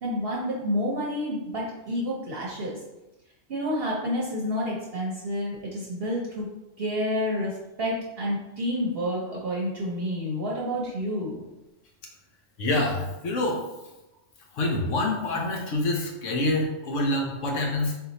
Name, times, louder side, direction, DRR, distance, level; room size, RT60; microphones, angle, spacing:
voice 1, 0.0-2.8 3.5-6.5 6.8-11.4, equal, 55° right, -4 dB, 0.9 m, -29 dB
voice 2, 12.6-13.6 14.5-17.9, left 1 dB, 70° left, 1 dB, 1.0 m, -26 dB
4.0 x 2.8 x 4.0 m, 0.99 s
omnidirectional pair, 1.4 m